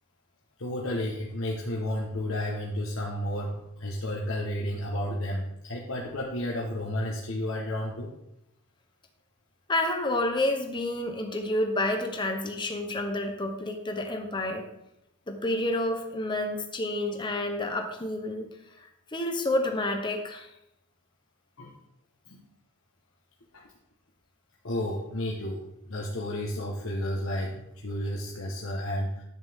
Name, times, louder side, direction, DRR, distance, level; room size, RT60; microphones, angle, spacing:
voice 1, 0.6-8.1 21.6-21.7 22.3-22.5 23.5-23.6 24.6-29.2, left 1 dB, 85° left, -3 dB, 1.3 m, -32 dB
voice 2, 9.7-14.7 15.3-18.5 19.1-20.5, left 1 dB, 25° left, 4 dB, 1.0 m, -29 dB
11.0 x 8.1 x 3.6 m, 0.83 s
head